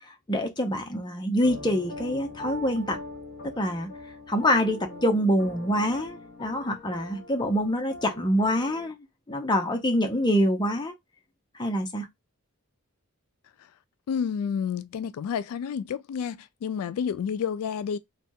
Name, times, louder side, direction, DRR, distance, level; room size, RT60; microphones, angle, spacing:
voice 1, 0.1-3.0 3.4-3.9 4.3-9.0 9.3-10.9 11.5-12.1, equal, 20° left, 0.7 m, -25 dB
sound 1, 1.4-8.9, left 1 dB, 35° left, 1.3 m, -42 dB
voice 2, 14.1-18.0, left 7 dB, 80° left, 0.3 m, -30 dB
3.3 x 2.3 x 2.6 m
head